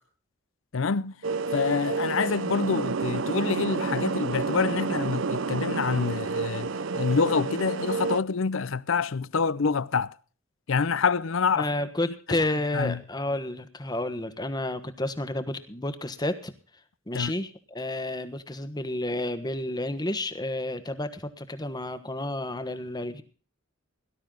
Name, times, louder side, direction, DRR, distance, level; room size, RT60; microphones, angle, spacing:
voice 1, 0.7-1.2 1.5-10.1 10.7-11.7 12.7-13.0 17.1-17.3, left 5 dB, 70° left, 0.6 m, -26 dB
sound 1, 1.2-8.2, right 4 dB, 65° right, 0.6 m, -30 dB
voice 2, 11.6-16.5 17.1-23.2, left 1 dB, 20° left, 1.3 m, -31 dB
18.0 x 12.0 x 3.9 m
head